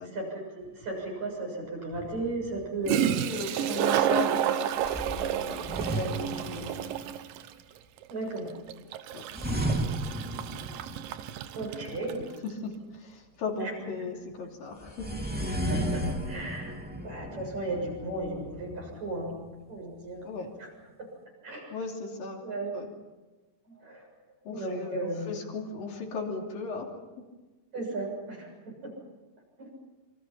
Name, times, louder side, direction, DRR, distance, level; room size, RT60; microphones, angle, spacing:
voice 1, 0.0-3.2 8.1-8.5 11.5-12.3 13.6-13.7 15.7-16.8 17.0-19.3 19.7-20.2 20.6-20.7 21.0-21.1 21.4-21.7 22.4-22.7 23.7-24.1 24.5-25.3 27.7-28.9 29.6-29.7, right 2 dB, 50° right, 0 dB, 8.4 m, -35 dB
Toilet flush, 0.8-0.9 2.6-2.7 2.9-12.2, right 10 dB, 80° right, 2.7 m, -30 dB
sound 1, 1.9-2.9 4.8-7.1 9.3-11.5 14.8-19.5, right 1 dB, 5° right, 1.8 m, -34 dB
voice 2, 2.9-7.0 9.1-9.3 12.4-15.3 20.2-20.5 21.7-22.4 22.7-22.9 24.4-26.9 27.2-27.3, left 4 dB, 75° left, 0 dB, 4.8 m, -37 dB
28.0 x 24.5 x 5.8 m, 1.2 s
omnidirectional pair, 4.1 m